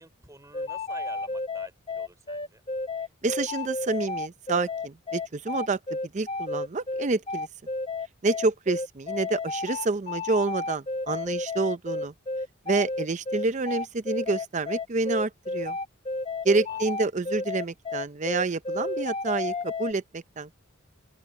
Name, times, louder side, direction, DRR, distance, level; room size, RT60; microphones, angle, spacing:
voice 1, 0.0-2.6 16.7-16.8, right 2 dB, 15° right, 3.8 m, -49 dB
sound 1, 0.5-19.9, left 3 dB, 25° left, 0.7 m, -32 dB
voice 2, 3.2-5.8 6.1-7.5 8.2-12.1 12.7-15.8 16.4-20.5, right 3 dB, 35° right, 0.5 m, -28 dB
open air
head